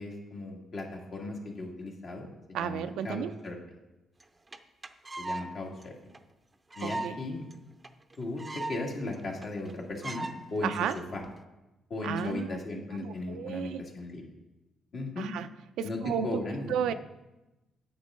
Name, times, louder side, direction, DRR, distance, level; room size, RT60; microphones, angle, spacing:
voice 1, 0.0-3.6 5.2-5.9 6.8-7.4 8.2-10.7 11.1-11.2 11.9-14.2 14.9-15.3 15.8-16.9, left 2 dB, 55° left, -1 dB, 2.1 m, -37 dB
voice 2, 2.5-3.3 6.8-7.1 10.6-11.0 12.0-12.5 13.0-13.8 15.2-15.5 15.8-16.4 16.7-16.9, right 8 dB, 85° right, 10 dB, 0.4 m, -32 dB
sound 1, 4.2-4.3 4.5-4.6 4.8-5.5 5.8-5.9 6.1-6.2 6.7-7.2 7.5-7.6 7.8-7.9 8.1-8.8 9.1-9.2 9.4-9.7 10.0-10.4 11.0-11.3, right 2 dB, 20° right, 0.6 m, -37 dB
9.5 x 7.3 x 3.7 m, 1.0 s
cardioid pair, 90°, 0 cm